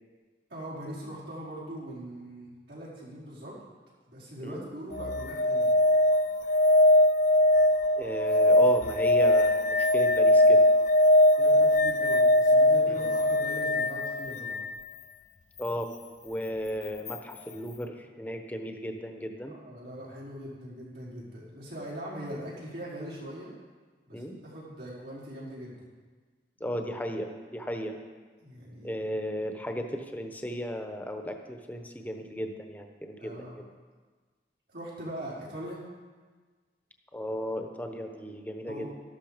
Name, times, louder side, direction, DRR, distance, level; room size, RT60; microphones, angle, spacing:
voice 1, 0.5-3.6 4.1-5.8 11.4-14.6 19.5-23.5 24.1-25.9 28.4-28.9 33.2-33.6 34.7-35.8 38.6-38.9, right 1 dB, 80° right, -7 dB, 4.9 m, -41 dB
sound 1, 4.9-14.7 17.1-17.2, left 1 dB, 45° left, 0.6 m, -21 dB
voice 2, 8.0-10.6 12.9-13.0 15.6-15.9 16.2-19.5 24.1-24.3 26.6-28.0 28.8-33.7 37.1-38.9, equal, 10° left, 4 dB, 1.0 m, -35 dB
13.0 x 12.5 x 5.1 m, 1.4 s
head